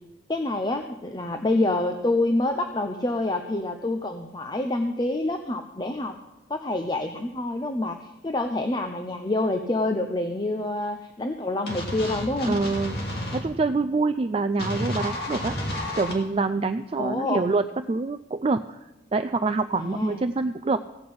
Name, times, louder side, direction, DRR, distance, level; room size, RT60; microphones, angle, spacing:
voice 1, 0.3-6.2 6.5-12.6 17.0-17.4 19.8-20.2, left 2 dB, 25° left, 6 dB, 0.7 m, -27 dB
sound 1, 11.7-13.4 14.6-16.1, left 1 dB, 60° left, 2.7 m, -31 dB
voice 2, 12.4-13.0 13.3-15.6 16.0-18.8 19.1-20.9, right 3 dB, 30° right, 9 dB, 0.4 m, -26 dB
16.0 x 6.0 x 8.6 m, 1.0 s
head